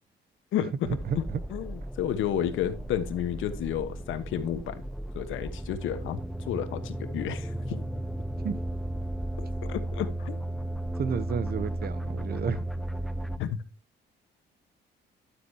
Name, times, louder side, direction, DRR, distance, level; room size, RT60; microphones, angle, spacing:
sound 1, 0.8-13.4, right 1 dB, ahead, 0.5 m, -35 dB
voice 1, 0.9-1.4 8.4-8.6 11.0-12.6, right 6 dB, 50° right, 0.9 m, -31 dB
voice 2, 1.5-4.8 5.1-6.2 6.5-7.8 9.7-10.4 13.4-13.5, left 10 dB, 85° left, 1.2 m, -31 dB
12.0 x 8.0 x 2.8 m
cardioid pair, 90°, 20 cm